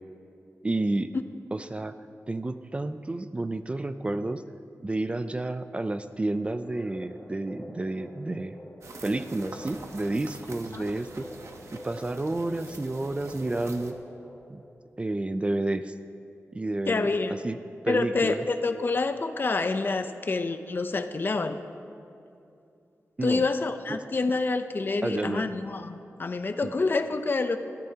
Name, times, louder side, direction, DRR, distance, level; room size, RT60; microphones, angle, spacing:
voice 1, 0.6-1.1 1.5-1.9 2.3-4.4 4.8-8.6 9.0-11.3 11.7-13.9 14.5-14.6 15.0-15.9 16.5-17.6 17.8-18.4 23.2-23.5 23.9-24.0 25.0-25.5 26.6-26.7, right 2 dB, 25° right, 10 dB, 0.4 m, -30 dB
sound 1, 6.5-14.9, left 1 dB, 25° left, 1.3 m, -47 dB
sound 2, 8.8-13.9, right 3 dB, 70° right, 1.0 m, -46 dB
voice 2, 16.9-17.4 17.9-21.6 23.2-27.6, left 3 dB, 45° left, 9 dB, 0.6 m, -27 dB
20.0 x 14.5 x 2.9 m, 2.6 s
wide cardioid pair, 120°, 5 cm